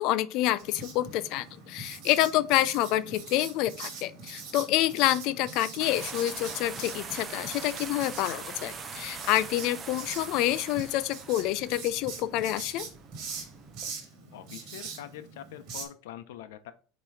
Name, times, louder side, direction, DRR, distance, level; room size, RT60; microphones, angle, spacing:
voice 1, 0.0-12.9, left 14 dB, 45° left, 0.4 m, -28 dB
Writing, 0.6-15.8, right 5 dB, 35° right, 1.6 m, -43 dB
sound 1, 5.8-13.9, right 5 dB, 20° right, 0.5 m, -42 dB
voice 2, 14.3-16.7, left 11 dB, 85° left, 0.7 m, -44 dB
7.3 x 3.0 x 4.8 m
cardioid pair, 175°, 0 cm